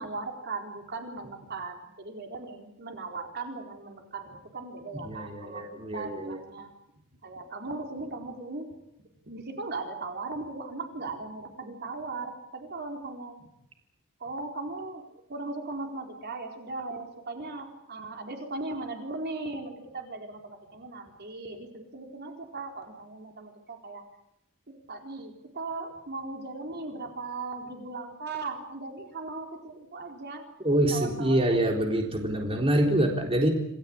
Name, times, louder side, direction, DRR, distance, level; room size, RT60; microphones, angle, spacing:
voice 1, 0.0-5.6 5.9-6.7 7.2-8.7 9.2-13.5 14.2-24.0 24.7-30.4 30.9-31.6, right 3 dB, 50° right, 3 dB, 4.2 m, -38 dB
voice 2, 5.0-6.4 30.6-33.5, right 1 dB, 25° right, 1 dB, 4.0 m, -25 dB
28.0 x 19.5 x 8.8 m, 0.82 s
head